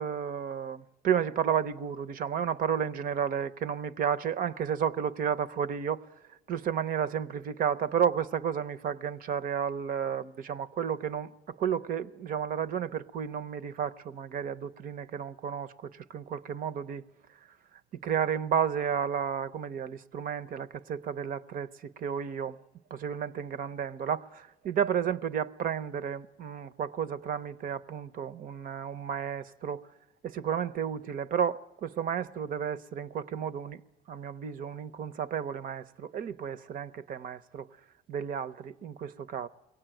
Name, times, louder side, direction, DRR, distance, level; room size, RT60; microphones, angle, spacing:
voice 1, 0.0-6.0 6.5-17.0 18.0-22.6 22.9-29.9 30.2-33.8 34.1-37.7 38.1-39.5, right 8 dB, 55° right, 0.7 m, -32 dB
23.0 x 18.0 x 9.0 m
cardioid pair, 110°, 17 cm